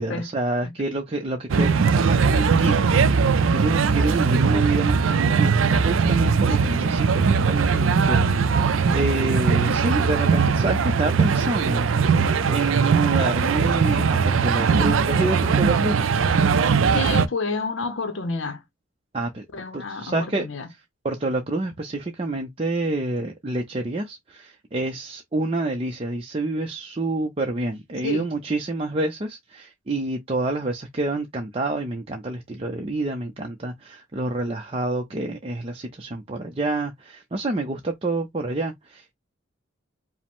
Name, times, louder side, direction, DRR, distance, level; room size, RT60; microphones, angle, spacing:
voice 1, 0.0-11.9 12.5-16.1 19.1-19.5 19.7-20.5 21.0-39.1, right 2 dB, 30° right, 0.5 m, -28 dB
sound 1, 1.5-17.3, right 5 dB, 75° right, 0.4 m, -20 dB
voice 2, 16.9-18.6 19.5-20.7 28.0-28.3, left 3 dB, 65° left, 0.7 m, -29 dB
5.0 x 2.1 x 3.5 m
head